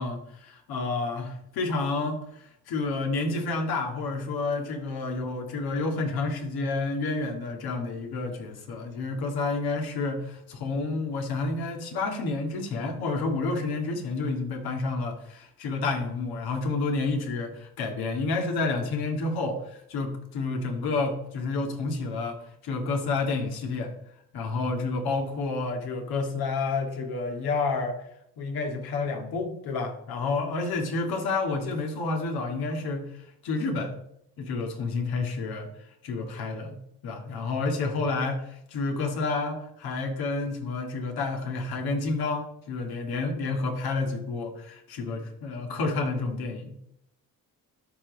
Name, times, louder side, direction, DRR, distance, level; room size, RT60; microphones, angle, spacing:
voice 1, 0.0-23.9 24.3-28.0 28.4-33.1 33.4-34.0 34.4-35.7 36.0-46.8, left 3 dB, 70° left, 3 dB, 2.1 m, -30 dB
13.0 x 5.4 x 4.0 m, 0.75 s
supercardioid pair, 65°, 38 cm